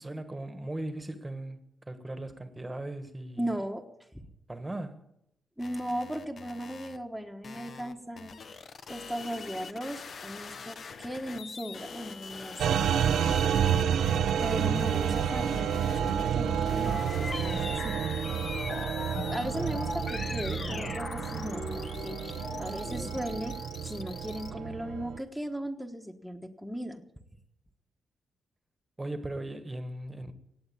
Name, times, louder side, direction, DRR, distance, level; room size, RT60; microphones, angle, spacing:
voice 1, 0.0-1.6 1.9-3.5 4.5-5.0 29.0-30.3, right 1 dB, 15° right, 1.4 m, -38 dB
voice 2, 3.4-3.8 5.6-8.4 8.9-12.8 14.4-18.0 19.3-23.6 23.8-27.0, equal, ahead, 1.3 m, -37 dB
sound 1, 5.6-7.0 7.4-24.5, left 5 dB, 60° left, 1.2 m, -44 dB
sound 2, 12.6-25.2, right 9 dB, 85° right, 0.6 m, -30 dB
sound 3, 12.7-23.4, left 3 dB, 35° left, 1.0 m, -40 dB
17.5 x 8.0 x 8.7 m
cardioid pair, 105°, 0 cm